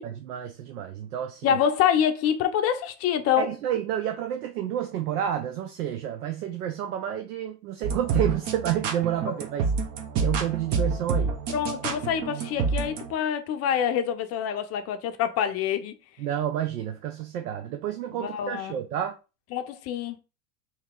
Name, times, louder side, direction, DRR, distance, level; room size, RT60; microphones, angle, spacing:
voice 1, 0.3-1.6 3.4-9.7 10.2-11.4 16.2-19.2, right 10 dB, 75° right, 0.6 m, -30 dB
voice 2, 1.4-3.5 11.5-15.9 18.1-18.8 19.5-20.2, left 9 dB, 35° left, 0.6 m, -26 dB
sound 1, 7.8-13.1, right 5 dB, 35° right, 0.8 m, -28 dB
2.9 x 2.8 x 3.6 m
hypercardioid pair, 95°, 46 cm